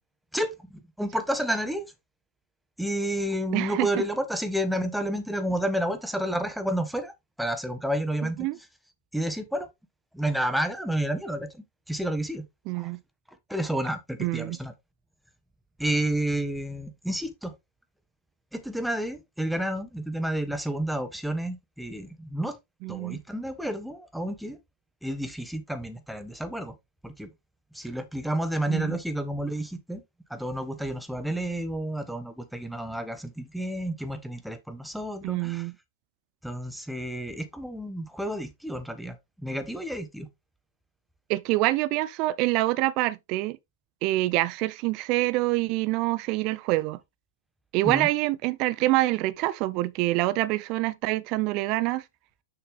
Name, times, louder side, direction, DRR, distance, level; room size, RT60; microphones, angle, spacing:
voice 1, 0.3-1.9 2.8-7.1 7.4-8.5 9.1-9.7 10.1-12.4 12.7-12.9 13.5-14.7 15.8-17.5 18.5-22.6 22.9-24.6 25.0-26.7 27.0-27.3 27.7-30.0 30.3-35.7 36.4-39.2 39.4-40.3 47.8-48.1, right 1 dB, ahead, 1.3 m, -30 dB
voice 2, 3.5-3.9 8.4-8.6 12.7-13.0 14.2-14.6 22.8-23.2 28.7-29.0 35.2-35.7 41.3-43.6 44.0-47.0 47.7-52.0, right 18 dB, 45° right, 0.5 m, -26 dB
6.7 x 5.8 x 3.3 m
hypercardioid pair, 105°, 0 cm